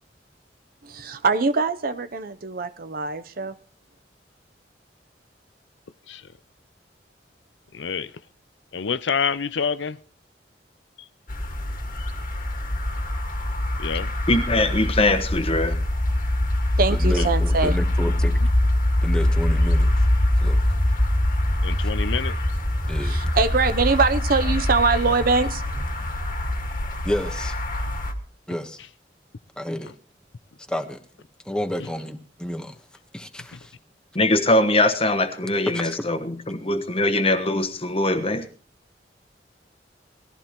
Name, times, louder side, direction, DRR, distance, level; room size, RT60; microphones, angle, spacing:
voice 1, 0.8-3.5 16.8-17.8 23.0-25.8, right 4 dB, 55° right, 0.7 m, -23 dB
voice 2, 7.7-8.1 8.7-10.0 13.8-14.1 17.2-17.3 21.6-22.4, left 6 dB, 85° left, 0.6 m, -27 dB
sound 1, 11.3-28.1, left 1 dB, 50° left, 1.8 m, -23 dB
voice 3, 14.3-15.8 34.1-38.4, left 2 dB, 35° left, 1.3 m, -22 dB
voice 4, 16.9-18.5 19.0-20.1 20.4-20.6 21.8-21.9 22.9-23.2 27.0-27.6 28.5-28.8 29.6-29.9 30.7-31.0 31.4-32.8 33.1-33.7 35.7-36.1, equal, 5° left, 1.2 m, -30 dB
20.0 x 14.5 x 3.0 m
head